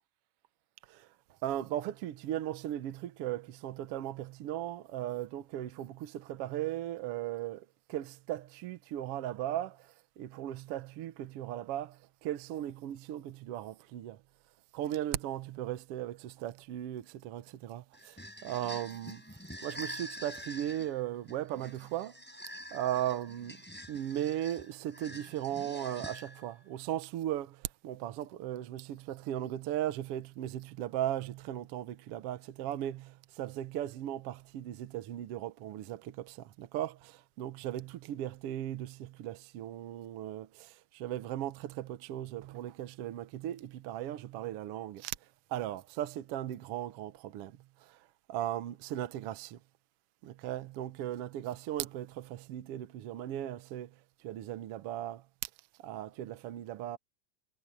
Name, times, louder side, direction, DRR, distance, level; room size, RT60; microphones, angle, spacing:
voice 1, 1.4-14.2 14.7-19.2 19.6-22.2 22.7-23.6 23.9-45.1 45.5-48.0 48.3-49.6 50.2-53.9 54.2-55.5 55.8-57.0, right 12 dB, 75° right, 1.3 m, -37 dB
sound 1, 17.9-26.6, equal, 5° left, 7.0 m, -46 dB
omnidirectional pair, 4.0 m